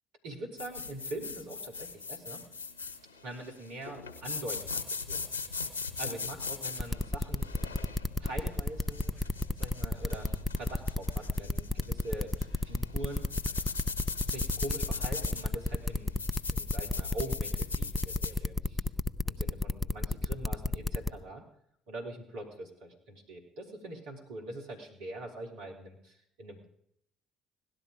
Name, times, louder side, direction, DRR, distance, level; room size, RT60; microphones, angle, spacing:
voice 1, 0.2-2.4 3.2-5.6 6.0-7.5 8.2-9.1 9.6-12.3 12.7-13.3 14.2-16.2 16.5-18.9 19.3-21.4 21.9-26.7, right 1 dB, 70° right, 1 dB, 3.6 m, -43 dB
sound 1, 0.6-18.4, left 4 dB, 90° left, 1.2 m, -40 dB
sound 2, 6.8-21.1, left 1 dB, 15° left, 0.8 m, -31 dB
sound 3, 8.4-14.7, right 8 dB, 40° right, 2.0 m, -57 dB
17.5 x 12.0 x 5.1 m, 0.71 s
hypercardioid pair, 55°, 0 cm